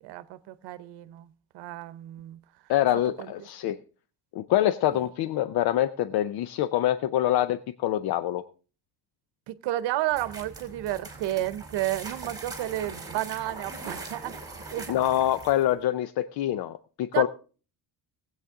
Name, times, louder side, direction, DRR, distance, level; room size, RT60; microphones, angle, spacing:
voice 1, 0.0-1.3 1.5-2.4 3.2-3.3 4.9-5.1 9.5-14.4 14.7-14.9 17.1-17.3, right 14 dB, 80° right, 0.8 m, -31 dB
voice 2, 2.7-3.8 4.3-8.4 14.9-17.3, left 12 dB, 65° left, 0.6 m, -25 dB
sound 1, 10.1-15.7, right 3 dB, 10° right, 2.6 m, -41 dB
19.0 x 8.2 x 3.6 m
cardioid pair, 160°, 40 cm